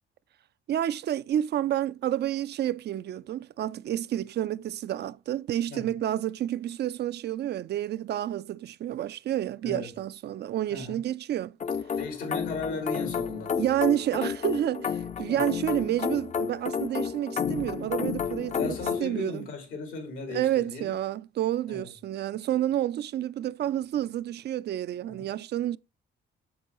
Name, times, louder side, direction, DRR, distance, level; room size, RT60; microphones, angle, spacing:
voice 1, 0.7-11.5 13.6-19.5 20.3-25.8, right 12 dB, 55° right, 0.4 m, -29 dB
voice 2, 9.6-9.9 10.7-11.0 12.0-13.6 15.3-15.4 18.5-20.9 21.7-21.9 25.0-25.2, left 3 dB, 90° left, 3.5 m, -36 dB
sound 1, 11.6-19.0, left 7 dB, 35° left, 0.5 m, -31 dB
7.3 x 7.0 x 3.0 m
cardioid pair, 90°, 20 cm